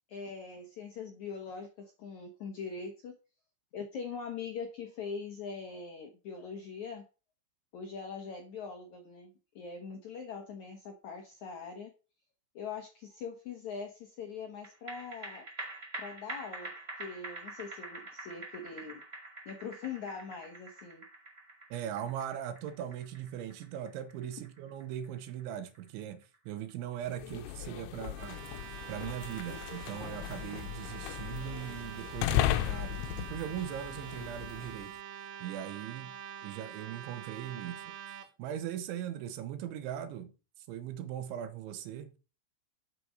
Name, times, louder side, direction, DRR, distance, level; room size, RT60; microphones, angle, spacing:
voice 1, 0.1-3.1 3.7-7.0 7.7-11.9 12.5-15.4 16.0-16.7 17.0-19.0 19.4-21.0, left 5 dB, 70° left, 1.7 m, -42 dB
sound 1, 14.6-27.3 27.6-27.7, right 2 dB, 45° right, 0.8 m, -46 dB
voice 2, 21.7-28.4 28.9-35.0 35.4-36.1 36.4-37.9 38.4-40.3 40.7-42.1, right 10 dB, 90° right, 3.5 m, -40 dB
sound 2, 27.1-34.9, left 13 dB, 90° left, 3.1 m, -36 dB
sound 3, 28.1-38.3, right 9 dB, 70° right, 3.2 m, -46 dB
8.4 x 7.8 x 6.3 m
omnidirectional pair, 5.3 m